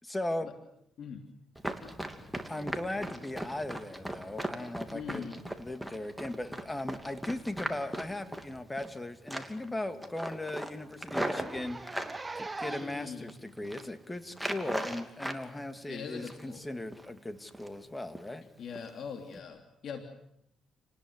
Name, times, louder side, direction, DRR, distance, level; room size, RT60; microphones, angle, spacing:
voice 1, 0.0-0.5 2.5-5.3 5.6-11.8 12.4-18.5, left 1 dB, 15° left, 8 dB, 2.4 m, -38 dB
Run, 1.5-9.0 9.3-9.7 10.0-12.2 12.7-13.3 13.6-13.8 14.3-15.4 15.8-16.6 16.9-17.1 17.5-17.8 18.1-18.3 18.7-18.9 19.3-19.4, right 1 dB, ahead, 3.0 m, -38 dB
voice 2, 4.9-5.4 12.7-13.3 15.9-16.6 18.6-20.1, left 6 dB, 60° left, 5 dB, 3.1 m, -41 dB
Zipper (clothing), 8.5-8.6 9.0-9.1 9.5-9.6 9.9-10.0 10.3-10.4 11.1-13.1 13.8-13.9 14.9-15.0, right 3 dB, 20° right, 1.1 m, -41 dB
29.5 x 19.5 x 8.2 m, 0.78 s
cardioid pair, 90°, 0 cm